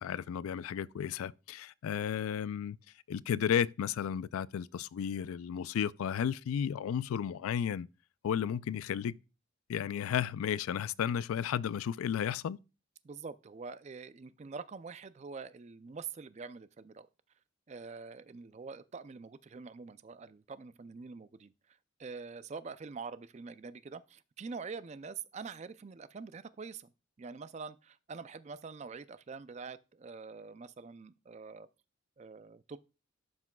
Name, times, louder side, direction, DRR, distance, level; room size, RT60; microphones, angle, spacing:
voice 1, 0.0-2.8 3.1-7.9 8.2-9.2 9.7-12.6, left 8 dB, 80° left, 0.3 m, -33 dB
voice 2, 13.0-17.1 17.7-21.5 22.0-26.9 27.2-31.7 32.2-32.8, right 5 dB, 30° right, 0.4 m, -45 dB
11.5 x 6.0 x 2.2 m
head